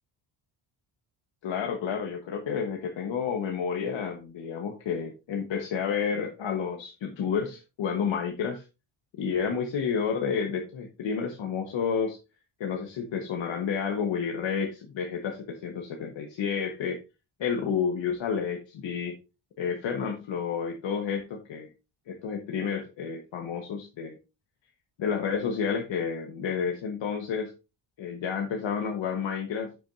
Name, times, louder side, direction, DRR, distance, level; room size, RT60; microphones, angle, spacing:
voice 1, 1.4-8.6 9.1-12.2 12.6-17.0 17.4-19.1 19.6-21.7 22.1-24.2 25.0-27.5 28.0-29.8, left 6 dB, 70° left, 3 dB, 1.3 m, -30 dB
10.0 x 6.2 x 2.6 m, 0.28 s
wide cardioid pair, 170°, 47 cm